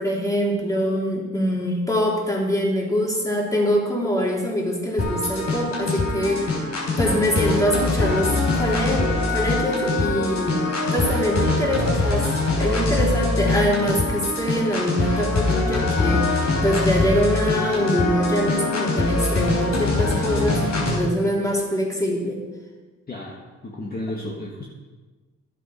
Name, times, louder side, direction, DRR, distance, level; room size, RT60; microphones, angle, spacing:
voice 1, 0.0-6.6 7.0-12.3 12.6-22.4, equal, 10° left, -2 dB, 3.4 m, -24 dB
sound 1, 5.0-21.0, left 2 dB, 60° left, 4.0 m, -23 dB
voice 2, 23.1-24.6, left 1 dB, 30° left, -3 dB, 1.7 m, -33 dB
12.0 x 7.7 x 5.8 m, 1.3 s
cardioid pair, 90°, 30 cm